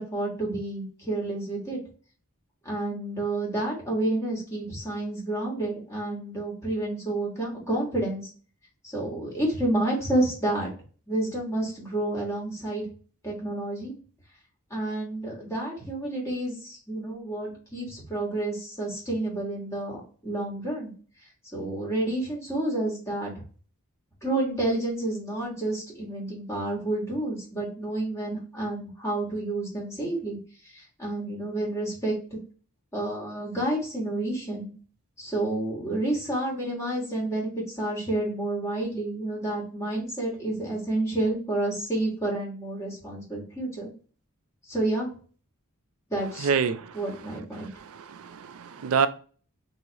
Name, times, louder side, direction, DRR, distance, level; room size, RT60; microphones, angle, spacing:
voice 1, 0.0-1.8 2.6-8.3 8.8-10.7 11.1-12.9 13.2-13.9 14.7-20.9 21.5-23.3 24.2-30.4 30.6-32.4 32.9-34.7 35.2-43.9 44.7-45.1 46.1-46.5 46.9-47.7, right 1 dB, 15° left, 1.5 m, -29 dB
voice 2, 46.4-47.0 47.6-49.1, right 6 dB, 70° right, 0.4 m, -27 dB
3.9 x 2.8 x 2.9 m
head